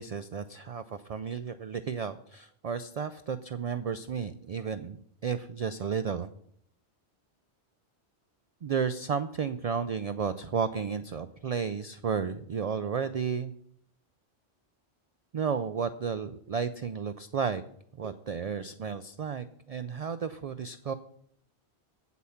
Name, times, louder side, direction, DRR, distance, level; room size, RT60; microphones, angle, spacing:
voice 1, 0.0-5.0 5.2-6.3 8.6-13.5 15.3-17.6 17.9-20.9, right 6 dB, 60° right, 12 dB, 0.4 m, -33 dB
8.5 x 8.2 x 5.7 m, 0.68 s
omnidirectional pair, 1.1 m